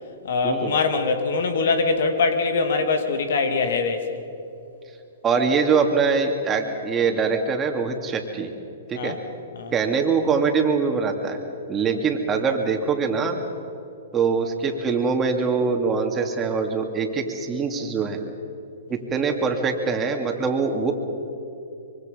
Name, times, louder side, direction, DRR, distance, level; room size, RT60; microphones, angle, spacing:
voice 1, 0.2-4.2 8.9-9.2 9.5-9.7, left 4 dB, 70° left, 7 dB, 2.4 m, -23 dB
voice 2, 5.2-8.5 8.9-9.2 9.7-11.4 11.7-13.4 14.1-18.2 18.9-20.9, right 5 dB, 20° right, 3 dB, 2.6 m, -23 dB
25.0 x 23.5 x 5.4 m, 2.8 s
hypercardioid pair, 130°, 0 cm